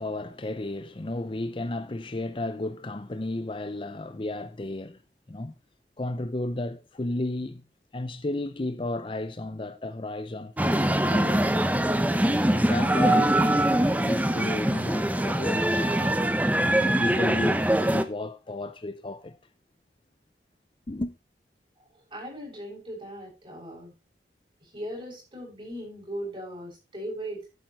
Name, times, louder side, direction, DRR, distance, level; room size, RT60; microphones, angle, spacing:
voice 1, 0.0-5.0 5.3-5.5 6.0-7.6 7.9-11.9 12.5-16.1 16.6-19.4 20.9-21.1, left 2 dB, 30° left, 0.6 m, -33 dB
sound 1, 10.6-18.0, right 1 dB, 10° right, 0.7 m, -23 dB
voice 2, 21.9-23.9 24.6-27.5, right 1 dB, 30° right, 7.4 m, -38 dB
11.5 x 9.1 x 3.1 m
head